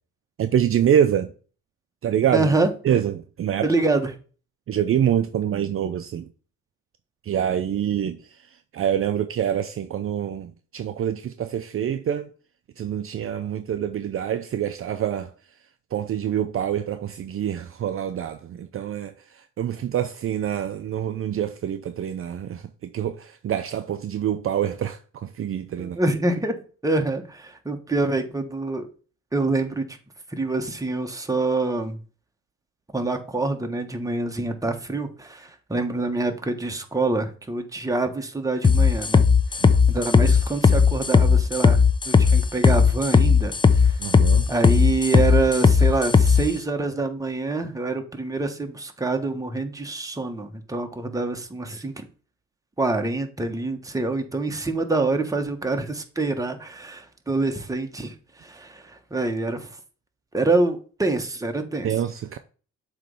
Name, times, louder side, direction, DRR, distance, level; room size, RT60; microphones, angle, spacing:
voice 1, 0.4-1.3 2.0-2.5 2.8-3.7 4.7-6.3 7.2-8.2 8.7-12.3 12.8-15.3 15.9-26.0 39.6-39.8 44.0-44.5 61.8-62.4, right 9 dB, 45° right, 0.5 m, -26 dB
voice 2, 2.3-2.7 3.6-4.1 25.8-26.6 26.8-28.9 29.3-30.0 30.3-32.0 32.9-39.3 39.9-44.0 44.5-52.1 52.8-59.7 60.3-61.9, right 3 dB, 10° right, 1.2 m, -26 dB
sound 1, 38.6-46.4, left 5 dB, 15° left, 0.5 m, -16 dB
7.4 x 3.2 x 5.3 m
cardioid pair, 90°, 30 cm